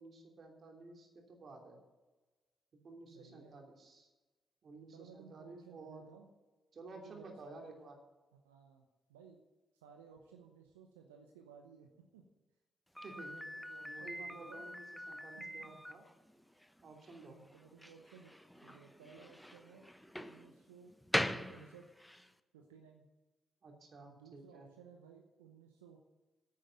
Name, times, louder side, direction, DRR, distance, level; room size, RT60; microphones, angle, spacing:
voice 1, 0.0-1.8 2.8-4.1 4.6-6.1 6.7-8.0 13.0-13.3 13.8-16.0 16.8-17.4 23.6-24.7, right 3 dB, 55° right, 2 dB, 2.9 m, -53 dB
voice 2, 3.1-3.6 4.9-6.3 7.0-7.7 8.3-9.4 9.8-12.2 13.2-14.7 15.4-15.7 17.3-18.4 18.6-19.9 20.2-20.9 21.5-21.9 22.5-23.0 24.1-26.0, right 6 dB, 85° right, 3 dB, 0.8 m, -58 dB
Slam, 12.9-22.3, equal, 5° left, 0.9 m, -42 dB
9.6 x 8.9 x 7.9 m, 1.2 s
hypercardioid pair, 40°, 0 cm